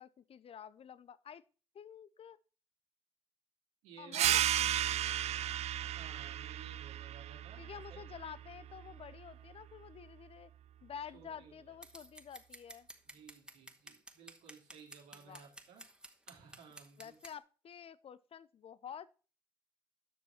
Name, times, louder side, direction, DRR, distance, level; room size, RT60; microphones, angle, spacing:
voice 1, 0.0-1.4 1.7-2.4 4.0-4.7 7.6-10.5 10.8-12.9 15.3-15.4 17.0-19.1, left 8 dB, 55° left, 0.7 m, -49 dB
voice 2, 3.8-4.5 5.8-8.1 11.1-11.8 13.1-15.9 16.3-17.2, right 6 dB, 85° right, 2.3 m, -57 dB
sound 1, 4.1-9.3, right 12 dB, 70° right, 0.5 m, -35 dB
Scissors, 11.8-17.3, right 1 dB, 5° right, 1.8 m, -53 dB
10.0 x 6.2 x 5.7 m
hypercardioid pair, 45°, 12 cm